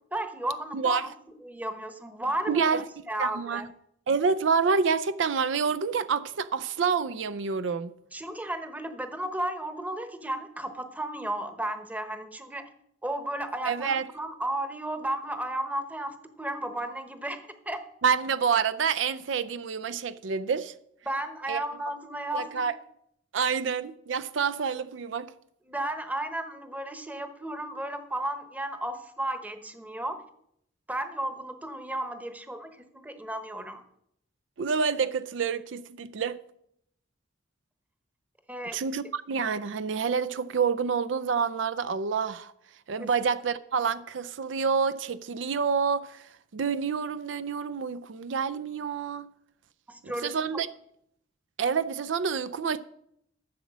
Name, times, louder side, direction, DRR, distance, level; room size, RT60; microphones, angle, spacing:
voice 1, 0.1-1.1 1.4-3.7 8.1-12.7 13.0-17.8 21.1-22.7 25.7-30.2 30.9-33.8 38.5-38.9 43.0-43.1 49.9-50.6, right 1 dB, 10° right, 0.9 m, -34 dB
voice 2, 2.5-2.9 3.2-3.7 4.1-7.9 13.6-14.1 18.0-20.7 21.5-21.6 22.3-22.7 23.3-25.3 34.6-36.4 38.7-42.5 42.9-49.3 50.0-50.7 51.6-52.8, right 5 dB, 75° right, 0.5 m, -28 dB
12.0 x 7.2 x 6.1 m
head